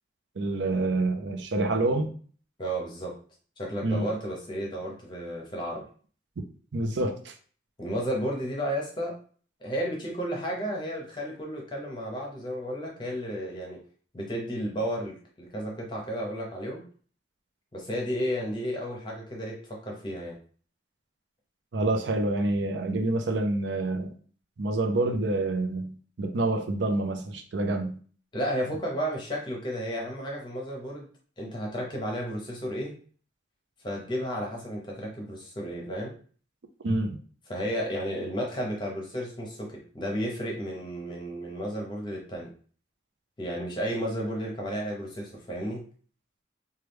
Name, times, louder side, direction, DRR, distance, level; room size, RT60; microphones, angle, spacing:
voice 1, 0.4-2.1 3.8-4.1 6.7-7.3 21.7-24.1 24.6-28.0 36.8-37.2, right 2 dB, 85° right, 6 dB, 0.5 m, -27 dB
voice 2, 2.6-3.1 3.6-5.8 7.8-9.2 9.6-13.8 14.1-16.8 17.7-20.4 28.3-31.1 31.4-32.9 33.8-36.1 37.5-42.5 43.4-45.8, equal, 25° left, -1 dB, 0.7 m, -33 dB
3.1 x 2.3 x 3.3 m, 0.43 s
head